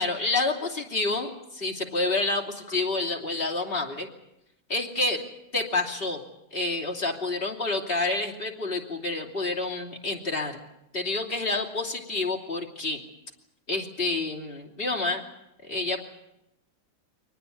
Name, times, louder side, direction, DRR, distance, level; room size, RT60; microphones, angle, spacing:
voice 1, 0.0-4.1 4.7-5.2 5.5-6.2 6.5-10.6 10.9-13.0 13.7-15.2 15.6-16.0, left 2 dB, 30° left, 0 dB, 3.2 m, -28 dB
24.5 x 19.5 x 8.4 m, 0.86 s
omnidirectional pair, 1.8 m